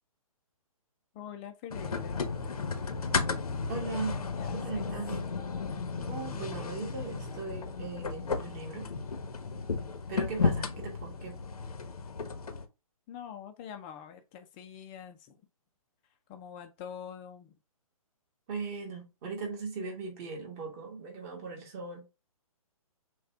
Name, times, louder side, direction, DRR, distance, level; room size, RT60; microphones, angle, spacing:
voice 1, 1.1-2.5 4.3-4.9 13.1-15.4 16.3-17.5, left 8 dB, 20° left, 0.5 m, -45 dB
sound 1, 1.7-12.7, left 4 dB, 85° left, 1.0 m, -34 dB
voice 2, 3.7-4.2 4.5-5.3 6.1-8.9 10.1-11.3 18.5-22.1, right 4 dB, 25° right, 1.5 m, -38 dB
6.4 x 2.4 x 3.4 m
hypercardioid pair, 160°, 19 cm